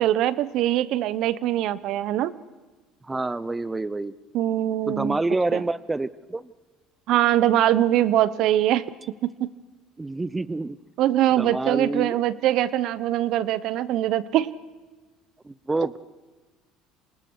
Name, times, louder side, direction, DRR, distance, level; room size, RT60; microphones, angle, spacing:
voice 1, 0.0-2.3 4.3-5.2 5.5-5.6 7.1-8.9 9.2-9.5 11.0-14.5, right 13 dB, 65° right, 17 dB, 1.0 m, -22 dB
voice 2, 3.0-4.1 4.9-6.5 10.0-10.8 11.3-12.2 15.4-16.0, right 2 dB, 15° right, 18 dB, 0.8 m, -27 dB
28.0 x 26.5 x 6.4 m, 1.2 s
supercardioid pair, 80°, 0 cm